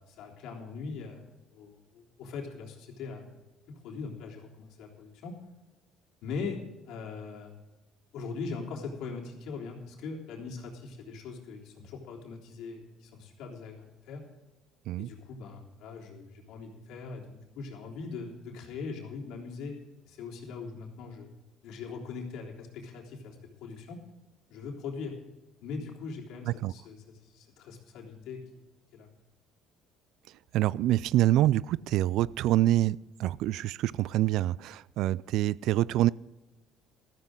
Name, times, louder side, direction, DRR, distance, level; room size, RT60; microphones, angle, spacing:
voice 1, 0.0-3.3 3.7-5.3 6.2-6.6 6.9-7.5 8.1-14.2 15.0-19.8 20.0-21.3 21.6-23.4 23.6-24.0 24.5-25.2 25.6-28.4 28.9-29.1, left 4 dB, 75° left, 3.5 m, -41 dB
voice 2, 30.5-36.1, right 14 dB, 70° right, 0.3 m, -26 dB
14.5 x 14.0 x 3.8 m
cardioid pair, 115°, 0 cm